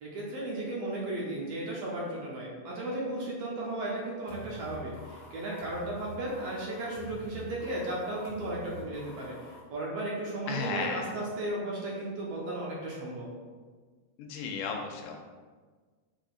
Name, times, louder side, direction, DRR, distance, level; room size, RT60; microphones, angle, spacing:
voice 1, 0.0-13.3, right 1 dB, 70° right, -4 dB, 1.7 m, -35 dB
sound 1, 4.3-9.6, left 3 dB, 70° left, 2.3 m, -47 dB
voice 2, 10.5-11.1 14.2-15.2, left 5 dB, 90° left, 2 dB, 2.0 m, -34 dB
5.9 x 3.7 x 2.4 m, 1.5 s
omnidirectional pair, 3.3 m